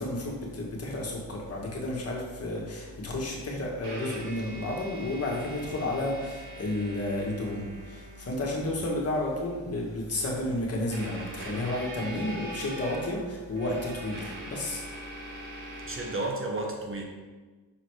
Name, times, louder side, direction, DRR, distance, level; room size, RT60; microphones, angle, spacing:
voice 1, 0.0-14.8, left 1 dB, 40° left, -2 dB, 1.7 m, -32 dB
sound 1, 2.6-2.7 3.7-9.6 10.9-16.2, right 1 dB, 65° right, 1.5 m, -42 dB
voice 2, 15.8-17.0, right 2 dB, 35° right, 1 dB, 1.1 m, -33 dB
6.2 x 4.1 x 4.8 m, 1.3 s
cardioid pair, 95°, 36 cm